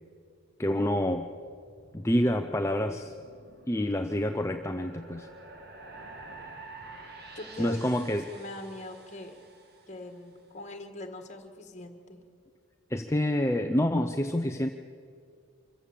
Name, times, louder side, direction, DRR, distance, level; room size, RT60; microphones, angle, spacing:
voice 1, 0.6-1.3 1.9-3.1 3.7-5.3 7.6-8.3 12.9-14.7, left 1 dB, 15° left, 6 dB, 0.5 m, -27 dB
sound 1, 1.3-10.3, right 2 dB, 45° right, 1.9 m, -49 dB
voice 2, 7.3-7.8 8.1-9.4 9.9-12.2, left 1 dB, 35° left, 6 dB, 1.7 m, -42 dB
25.0 x 15.0 x 7.5 m, 2.3 s
head